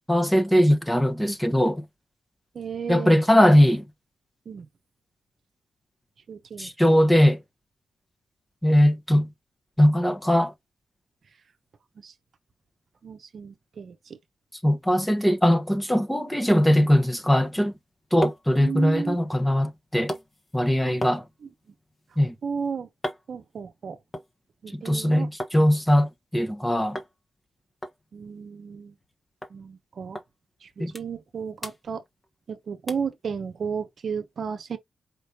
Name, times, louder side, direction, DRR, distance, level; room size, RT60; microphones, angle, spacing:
voice 1, 0.1-1.8 2.9-3.8 6.6-7.4 8.6-9.3 9.8-10.5 14.6-17.7 18.1-20.1 20.5-21.2 22.2-22.3 24.7-27.0 30.8-30.9, equal, 10° left, 1.0 m, -20 dB
voice 2, 2.5-3.2 4.5-4.7 6.3-6.7 12.0-12.1 13.0-14.2 18.6-19.2 20.8-21.0 22.4-22.9 23.3-24.0 24.6-25.3 28.1-28.9 29.5-30.2 30.6-32.0 32.5-34.8, right 6 dB, 65° right, 0.7 m, -33 dB
sound 1, 17.7-25.6 25.9-26.6 26.9-27.1 27.4-27.5 27.8-29.1 29.4-29.6 30.1-30.3 30.7-31.3 31.6-32.5 32.9-33.2 33.6-33.7, equal, 30° left, 1.2 m, -38 dB
5.2 x 3.1 x 2.7 m
supercardioid pair, 45°, 0 cm